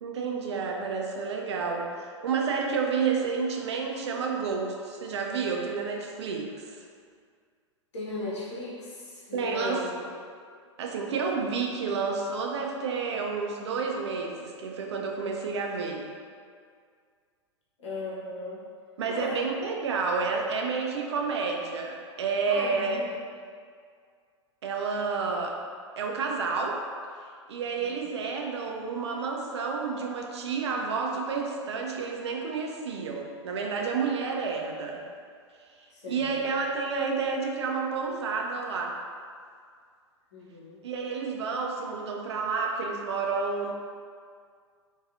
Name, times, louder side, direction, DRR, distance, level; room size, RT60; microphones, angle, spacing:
voice 1, 0.0-6.8 9.3-9.8 10.8-16.1 19.0-23.0 24.6-25.6 26.0-26.8 27.5-35.0 36.1-39.0 40.8-43.7, right 5 dB, 65° right, 1 dB, 0.4 m, -30 dB
voice 2, 7.9-10.0 17.8-18.6 19.1-19.5 22.5-23.1 27.8-28.0 35.9-36.5 40.3-40.8, left 2 dB, 70° left, -7 dB, 0.9 m, -36 dB
2.6 x 2.3 x 2.4 m, 2.1 s
figure-of-eight pair, 100°, 16 cm